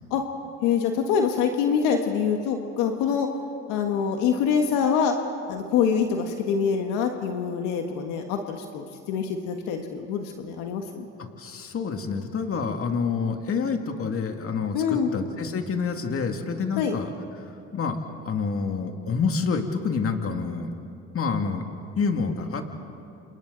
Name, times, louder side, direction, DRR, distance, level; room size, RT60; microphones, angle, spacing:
voice 1, 0.6-3.3 3.7-5.1 5.5-11.1 14.7-15.1 16.8-17.0, left 7 dB, 80° left, 4 dB, 1.7 m, -25 dB
voice 2, 11.4-14.8 15.1-17.1 17.7-18.0 18.2-20.7 21.1-21.6 22.0-22.7, left 5 dB, 45° left, 4 dB, 2.4 m, -27 dB
28.5 x 28.0 x 4.1 m, 2.7 s
supercardioid pair, 80°, 32 cm